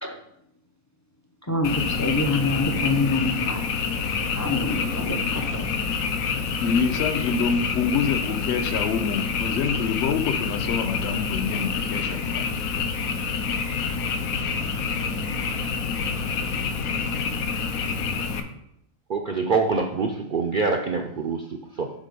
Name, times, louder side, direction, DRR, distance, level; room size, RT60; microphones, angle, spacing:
voice 1, 1.4-3.6 4.4-5.7, left 2 dB, 30° left, 3 dB, 0.3 m, -26 dB
Frog, 1.6-18.4, left 5 dB, 75° left, 1.1 m, -27 dB
voice 2, 6.6-12.5, left 6 dB, 60° left, 8 dB, 0.8 m, -26 dB
voice 3, 19.1-21.9, right 4 dB, 65° right, 3 dB, 0.5 m, -25 dB
7.3 x 4.2 x 5.3 m, 0.80 s
omnidirectional pair, 1.5 m